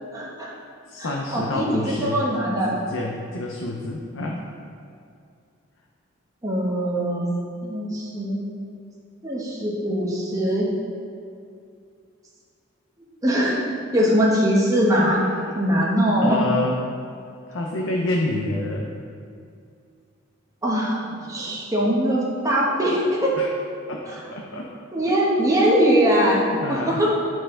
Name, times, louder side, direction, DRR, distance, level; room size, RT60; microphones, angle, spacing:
voice 1, 0.1-0.5 1.0-2.7 6.4-7.3 7.6-8.4 9.2-10.7 13.2-13.6 13.9-15.2 15.5-16.4 20.6-21.0 21.3-23.3 24.1-24.2 24.9-26.4 26.7-27.1, equal, 15° right, -5 dB, 1.1 m, -21 dB
voice 2, 0.9-2.3 2.6-4.5 15.4-15.8 16.2-16.8 17.5-18.9 21.0-21.6 23.4-23.5 23.9-24.0 24.3-24.7 26.5-27.0, left 2 dB, 70° left, -1 dB, 0.6 m, -28 dB
10.0 x 4.5 x 3.7 m, 2.4 s
head